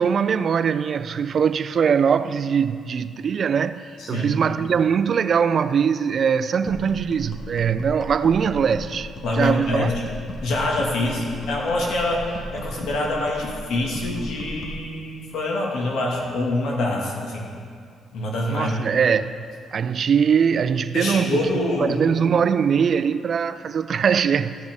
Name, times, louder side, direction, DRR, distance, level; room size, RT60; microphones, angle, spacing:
voice 1, 0.0-9.9 18.5-19.4 19.7-21.5 21.8-24.6, right 7 dB, 50° right, 0.3 m, -21 dB
voice 2, 4.0-4.3 9.2-10.0 10.4-17.5 18.1-18.7 20.9-22.0, left 2 dB, 75° left, 1.8 m, -25 dB
sound 1, 6.6-14.8, equal, 40° left, 1.4 m, -36 dB
14.0 x 6.4 x 3.5 m
cardioid pair, 90°, 0 cm